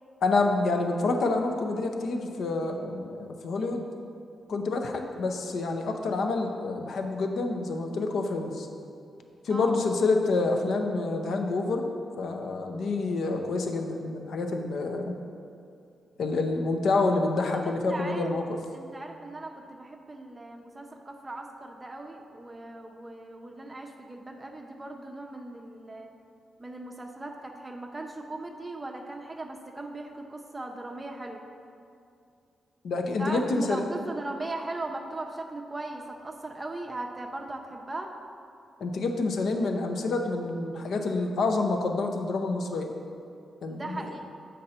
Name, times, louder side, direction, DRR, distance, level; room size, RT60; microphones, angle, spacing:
voice 1, 0.2-3.9 4.5-8.7 9.4-11.9 12.2-15.1 16.2-18.4 32.8-33.8 38.8-42.9 43.6-44.1, left 3 dB, 70° left, 4 dB, 0.7 m, -28 dB
voice 2, 17.6-18.4 18.7-26.1 26.6-31.4 33.2-38.1 43.7-44.2, right 2 dB, 20° right, 3 dB, 0.5 m, -38 dB
7.7 x 5.3 x 4.3 m, 2.5 s
cardioid pair, 115°, 0 cm